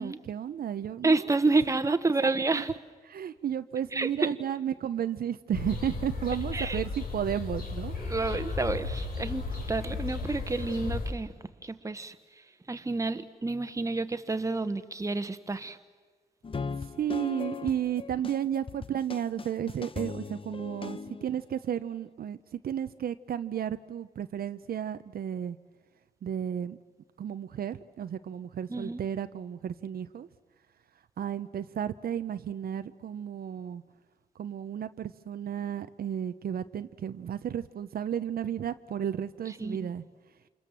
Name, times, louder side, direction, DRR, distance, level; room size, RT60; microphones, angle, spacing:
voice 1, 0.0-1.4 1.9-2.0 2.2-2.6 3.1-8.0 16.9-25.6 26.2-26.8 27.2-30.3 31.2-33.8 34.4-40.0, right 9 dB, 80° right, 0.7 m, -33 dB
voice 2, 1.0-2.7 3.9-4.3 6.5-6.8 8.0-11.3 11.6-12.1 12.7-15.8 28.7-29.0 39.6-39.9, right 3 dB, 20° right, 1.2 m, -29 dB
sound 1, 5.5-11.1, left 4 dB, 75° left, 3.8 m, -35 dB
sound 2, 16.4-21.4, left 5 dB, 35° left, 0.7 m, -38 dB
28.5 x 26.5 x 7.5 m
wide cardioid pair, 100°, 15 cm